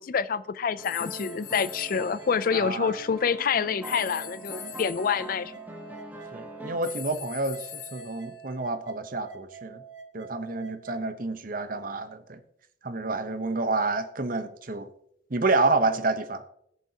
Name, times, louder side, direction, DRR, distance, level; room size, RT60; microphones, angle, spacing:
voice 1, 0.0-5.5, left 6 dB, 45° left, 0.4 m, -27 dB
sound 1, 0.8-3.1 3.8-5.3 6.8-8.6, left 10 dB, 90° left, 1.2 m, -42 dB
sound 2, 0.8-7.0, right 1 dB, 10° right, 1.1 m, -44 dB
sound 3, 1.1-11.1, right 7 dB, 85° right, 1.2 m, -47 dB
voice 2, 2.5-3.0 6.3-9.8 10.1-12.4 12.8-14.9 15.3-16.4, right 3 dB, 45° right, 0.9 m, -29 dB
21.0 x 7.0 x 2.8 m
head